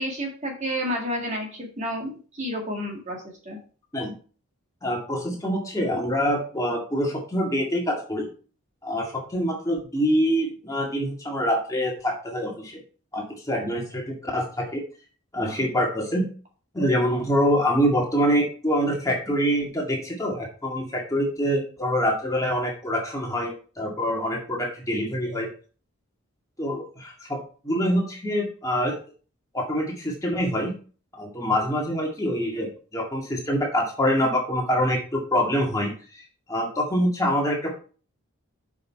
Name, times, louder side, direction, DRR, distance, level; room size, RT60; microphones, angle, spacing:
voice 1, 0.0-3.6, equal, 30° right, 0 dB, 1.8 m, -30 dB
voice 2, 4.8-8.3 8.8-12.8 13.1-14.8 15.3-16.3 16.7-25.5 26.6-28.9 29.5-30.7 31.1-37.8, equal, 15° left, -2 dB, 2.0 m, -25 dB
7.6 x 5.7 x 4.5 m, 0.39 s
head